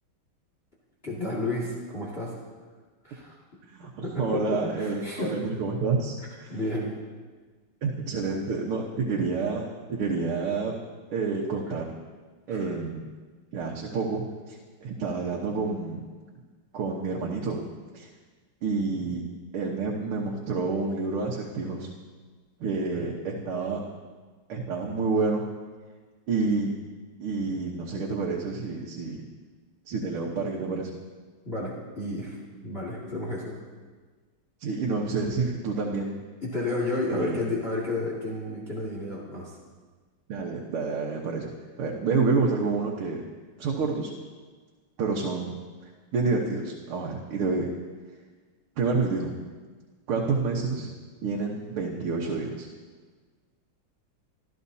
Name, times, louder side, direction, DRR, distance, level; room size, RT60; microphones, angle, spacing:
voice 1, 1.0-2.3 3.0-3.4 4.0-5.3 6.5-6.9 12.5-12.7 22.9-23.1 31.4-32.3 32.6-33.6 36.4-39.5, left 2 dB, 30° left, -5 dB, 2.4 m, -31 dB
voice 2, 3.6-6.6 7.8-10.7 11.1-11.9 12.5-13.1 13.5-16.1 16.7-17.6 17.9-18.1 18.6-19.2 19.5-21.9 22.6-23.8 24.5-25.4 26.3-26.7 27.2-29.2 29.9-30.9 34.6-36.2 37.1-37.4 40.3-41.5 41.8-43.2 43.6-44.1 45.0-45.5 46.1-47.7 48.8-49.3 50.1-50.9 51.2-52.7, right 4 dB, 85° right, -2 dB, 2.2 m, -28 dB
27.0 x 14.0 x 2.8 m, 1.4 s
omnidirectional pair, 2.3 m